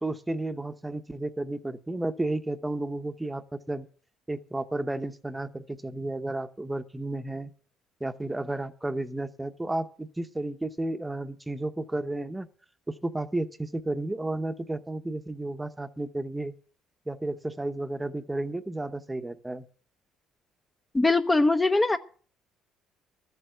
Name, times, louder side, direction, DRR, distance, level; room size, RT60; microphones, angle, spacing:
voice 1, 0.0-3.9 4.3-7.5 8.0-12.5 12.9-16.5 17.1-19.6, right 2 dB, 10° right, 10 dB, 0.9 m, -32 dB
voice 2, 20.9-22.0, left 2 dB, 15° left, 9 dB, 0.8 m, -21 dB
13.5 x 8.2 x 7.8 m, 0.42 s
cardioid pair, 110°, 0 cm